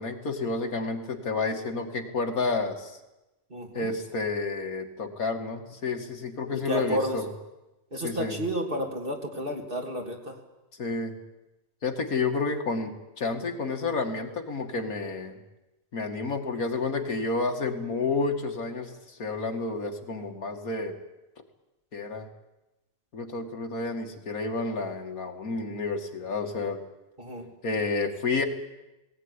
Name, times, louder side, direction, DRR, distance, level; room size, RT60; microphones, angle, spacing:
voice 1, 0.0-3.0 3.7-7.3 8.0-8.4 10.7-11.2 11.8-15.4 15.9-21.0 21.9-22.3 23.1-26.8 27.6-28.4, left 3 dB, 85° left, 4 dB, 2.6 m, -30 dB
voice 2, 3.5-3.9 6.7-7.2 7.9-10.2 27.2-27.4, equal, 40° right, 1 dB, 3.2 m, -31 dB
19.0 x 18.5 x 9.8 m, 1.0 s
omnidirectional pair, 1.5 m